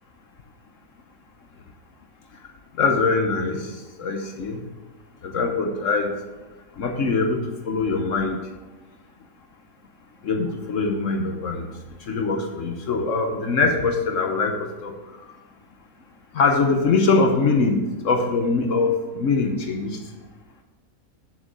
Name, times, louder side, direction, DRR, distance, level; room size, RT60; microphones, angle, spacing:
voice 1, 2.8-3.6 4.0-4.6 5.2-6.1 6.8-8.4 10.2-11.7 12.1-14.5 14.8-14.9 16.3-20.0, left 4 dB, 60° left, 4 dB, 1.2 m, -22 dB
7.4 x 6.7 x 6.7 m, 1.2 s
omnidirectional pair, 1.6 m